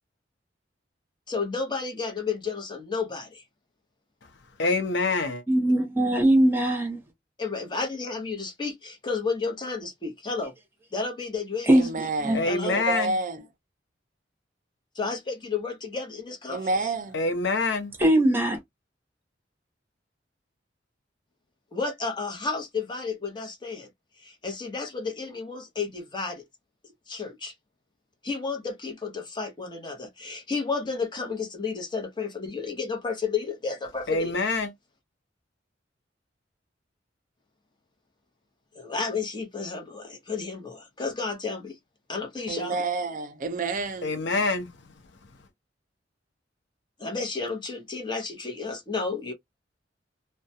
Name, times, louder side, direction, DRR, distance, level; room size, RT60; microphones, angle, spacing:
voice 1, 1.3-3.4 7.4-10.5 10.9-11.7 12.0-12.1 12.4-12.8 14.9-16.9 21.7-23.9 24.2-26.4 27.1-27.5 28.2-34.4 38.7-41.8 42.1-42.8 47.0-49.3, left 4 dB, 25° left, 0.8 m, -32 dB
voice 2, 4.6-5.4 12.3-13.1 17.1-17.9 34.1-34.7 44.0-44.7, left 3 dB, 70° left, 0.6 m, -26 dB
voice 3, 5.5-7.0 11.7-11.9 12.2-12.4 18.0-18.6, right 1 dB, 10° right, 0.9 m, -20 dB
voice 4, 11.7-13.4 16.5-17.2 42.5-44.1, right 3 dB, 45° right, 0.5 m, -29 dB
2.3 x 2.1 x 2.7 m
head